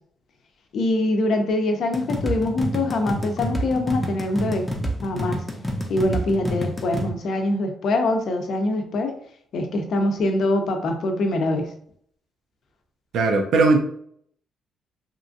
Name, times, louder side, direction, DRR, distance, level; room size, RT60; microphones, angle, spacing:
voice 1, 0.7-4.7 5.0-5.4 5.9-9.1 9.5-11.7, left 2 dB, 65° left, 4 dB, 0.5 m, -23 dB
sound 1, 1.9-7.1, equal, 10° left, 0.6 m, -28 dB
voice 2, 13.1-13.8, right 3 dB, 75° right, 3 dB, 0.5 m, -18 dB
2.8 x 2.4 x 2.6 m, 0.63 s
cardioid pair, 105°, 0 cm